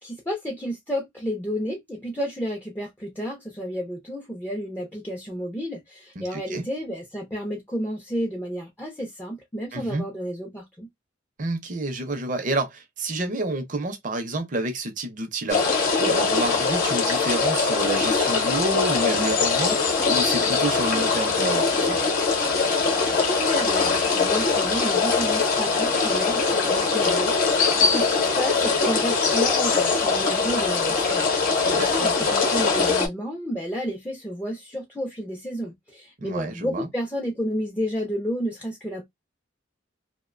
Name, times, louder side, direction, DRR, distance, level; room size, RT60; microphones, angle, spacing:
voice 1, 0.0-10.9 23.1-39.1, equal, 10° left, 0.4 m, -31 dB
voice 2, 6.2-6.6 9.7-10.0 11.4-19.8 20.1-22.0 31.6-32.3 36.2-36.9, right 2 dB, 40° right, 0.6 m, -29 dB
sound 1, 15.5-33.1, left 4 dB, 45° left, 0.8 m, -22 dB
2.5 x 2.1 x 2.4 m
head